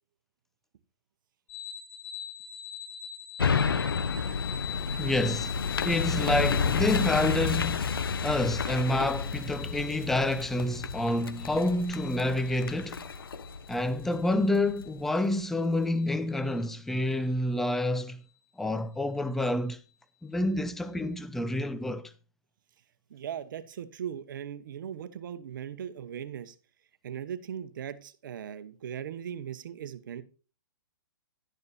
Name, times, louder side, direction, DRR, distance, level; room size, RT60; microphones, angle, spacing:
sound 1, 1.5-17.1, left 10 dB, 50° left, 3.0 m, -42 dB
sound 2, 3.4-14.8 15.3-15.4, left 5 dB, 85° left, 0.9 m, -31 dB
voice 1, 5.0-5.6 5.8-7.9 8.2-13.0 13.7-18.2 18.6-19.8 20.2-22.1, left 1 dB, 5° left, 0.5 m, -28 dB
voice 2, 23.1-26.5 27.0-30.2, right 9 dB, 65° right, 1.0 m, -38 dB
11.0 x 10.5 x 2.7 m
hypercardioid pair, 135°, 12 cm